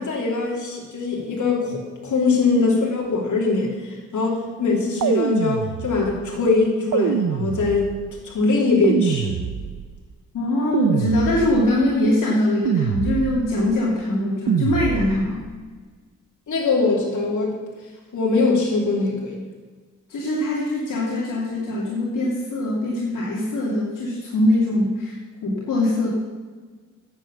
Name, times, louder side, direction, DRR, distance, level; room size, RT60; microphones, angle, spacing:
voice 1, 0.0-8.0 8.2-9.4 16.5-17.5 18.1-19.4, left 3 dB, 70° left, -2 dB, 3.2 m, -22 dB
sound 1, 5.0-6.2 6.9-8.1 8.8-10.0 10.7-11.8 12.7-13.6 14.5-15.4, right 9 dB, 80° right, 0.7 m, -25 dB
voice 2, 10.3-15.4 20.1-26.1, left 1 dB, 85° left, -5 dB, 2.6 m, -22 dB
9.9 x 8.3 x 7.2 m, 1.4 s
cardioid pair, 80°, 32 cm